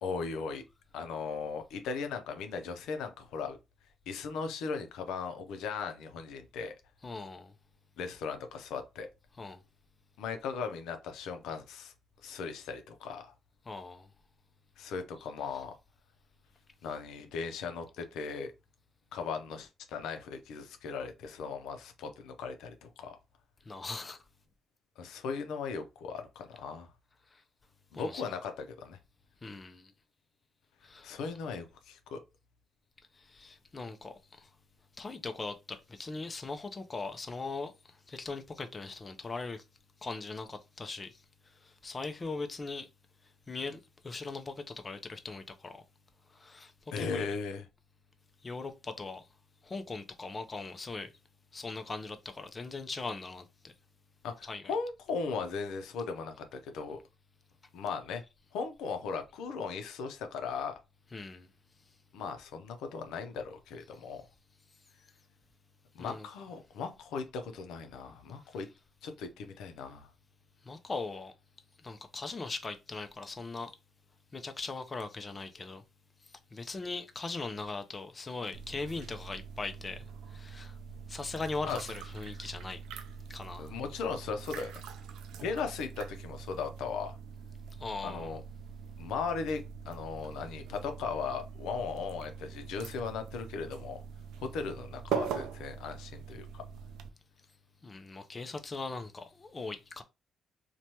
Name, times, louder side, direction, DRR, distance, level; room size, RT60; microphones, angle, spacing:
voice 1, 0.0-0.6 0.9-3.6 4.1-6.7 8.0-9.1 10.2-11.9 12.2-13.3 14.8-15.8 16.8-18.5 19.1-23.2 25.0-26.9 27.9-29.0 31.0-32.2 46.9-47.7 54.2-57.0 57.7-58.2 58.5-60.7 62.1-64.2 65.9-68.7 69.0-70.1 81.7-81.8 83.6-84.8 85.3-87.2 88.0-88.4 89.0-94.0 94.4-96.6, left 5 dB, 90° left, 0.5 m, -37 dB
voice 2, 7.0-7.5 9.4-9.6 13.7-14.1 23.7-24.2 27.3-27.4 27.9-28.2 29.4-29.9 30.8-31.3 33.1-34.5 35.0-39.6 40.0-42.9 43.5-45.8 46.3-47.2 48.4-49.3 49.6-51.1 51.5-53.7 54.5-54.6 61.1-61.5 66.0-66.3 70.6-71.3 71.8-73.7 74.3-75.8 76.5-80.8 81.1-82.8 83.3-83.7 87.8-88.4 97.8-100.0, left 3 dB, 30° left, 0.4 m, -40 dB
sound 1, 78.5-97.1, right 7 dB, 90° right, 0.3 m, -43 dB
3.0 x 2.2 x 2.7 m
cardioid pair, 90°, 0 cm